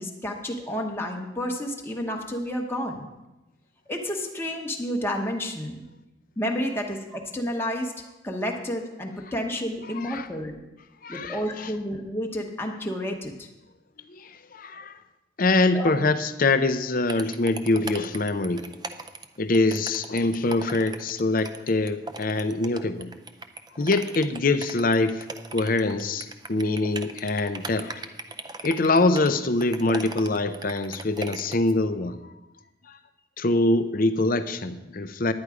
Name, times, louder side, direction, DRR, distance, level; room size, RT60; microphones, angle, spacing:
voice 1, 0.0-3.1 3.9-5.8 6.4-7.9 8.2-10.6 11.1-13.5 15.7-15.9, equal, 10° left, 1 dB, 1.0 m, -30 dB
voice 2, 11.0-11.7 14.1-14.9 15.4-18.7 19.4-23.1 23.8-25.3 25.5-28.1 28.6-32.2 32.9-33.0 33.4-35.3, left 2 dB, 45° left, 11 dB, 0.6 m, -24 dB
sound 1, 17.1-31.7, right 3 dB, 20° right, 0.5 m, -38 dB
10.5 x 9.5 x 4.9 m, 1.0 s
head